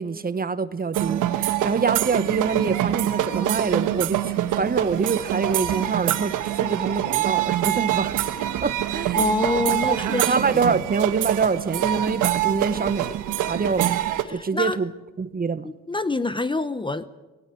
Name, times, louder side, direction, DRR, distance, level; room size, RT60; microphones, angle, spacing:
voice 1, 0.0-8.1 8.6-9.3 9.9-14.0 14.3-14.9 15.2-15.7, right 5 dB, 30° right, 1.1 m, -26 dB
sound 1, 0.9-14.2, right 12 dB, 85° right, 1.3 m, -25 dB
voice 2, 9.2-10.3 10.7-10.8 14.2-14.8 15.6-17.1, left 3 dB, 15° left, 0.8 m, -26 dB
18.5 x 17.5 x 9.3 m
cardioid pair, 90°, 30 cm